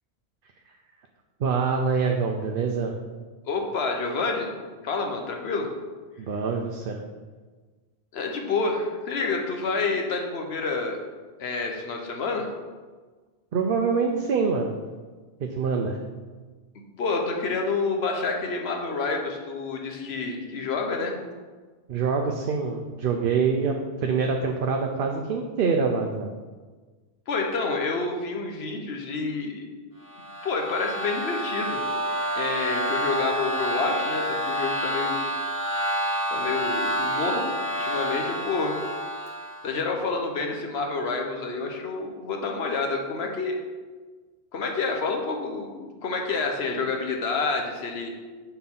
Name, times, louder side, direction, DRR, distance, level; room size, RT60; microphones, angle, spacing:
voice 1, 1.4-2.9 6.2-7.0 13.5-14.7 15.4-16.0 21.9-26.3, right 5 dB, 60° right, 2 dB, 0.7 m, -25 dB
voice 2, 3.5-4.5 4.8-5.7 8.1-11.0 11.4-12.5 17.0-21.2 27.3-29.6 30.4-31.8 32.3-35.2 36.3-37.4 37.8-38.8 39.6-43.6 44.5-48.1, left 4 dB, 70° left, 2 dB, 1.2 m, -28 dB
sound 1, 30.1-39.7, right 1 dB, 30° left, 1.1 m, -28 dB
6.9 x 6.0 x 3.7 m, 1.4 s
omnidirectional pair, 1.1 m